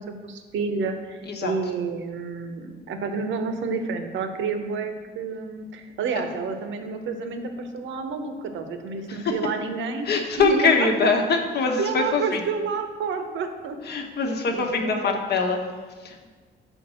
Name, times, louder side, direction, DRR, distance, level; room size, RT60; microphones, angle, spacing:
voice 1, 0.0-10.1 10.4-11.1 11.8-13.8 14.2-15.2, right 5 dB, 75° right, 7 dB, 0.8 m, -29 dB
voice 2, 10.1-12.4 13.9-15.6 16.0-16.3, left 4 dB, 55° left, 2 dB, 1.0 m, -23 dB
5.2 x 4.5 x 6.2 m, 1.4 s
cardioid pair, 90°, 20 cm